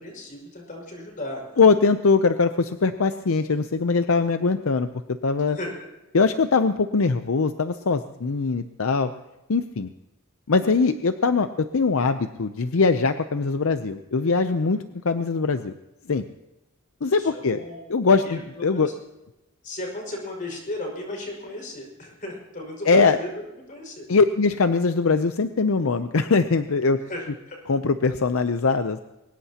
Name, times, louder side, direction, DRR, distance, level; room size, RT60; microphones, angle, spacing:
voice 1, 0.0-1.6 5.4-5.7 17.2-17.8 18.2-18.9 19.6-23.4 23.7-24.1 27.1-27.6, left 1 dB, 40° left, 0 dB, 5.5 m, -35 dB
voice 2, 1.6-5.6 6.1-9.1 9.5-9.9 10.5-15.7 16.1-16.2 17.0-17.6 17.9-18.9 22.9-23.2 24.1-27.0 27.7-29.0, left 4 dB, 70° left, 9 dB, 0.6 m, -21 dB
23.0 x 19.5 x 2.9 m, 1.0 s
head